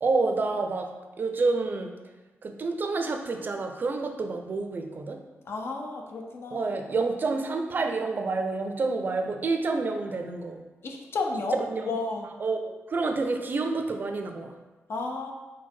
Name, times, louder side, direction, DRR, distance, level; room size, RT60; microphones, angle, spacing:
voice 1, 0.0-0.9 1.2-1.9 2.4-5.2 6.5-10.6 11.7-11.8 12.4-14.5, right 3 dB, 45° right, 5 dB, 0.4 m, -28 dB
voice 2, 5.5-6.8 10.8-12.3 14.9-15.3, left 3 dB, 60° left, 2 dB, 0.6 m, -32 dB
4.5 x 2.1 x 4.4 m, 1.2 s
cardioid pair, 100°, 5 cm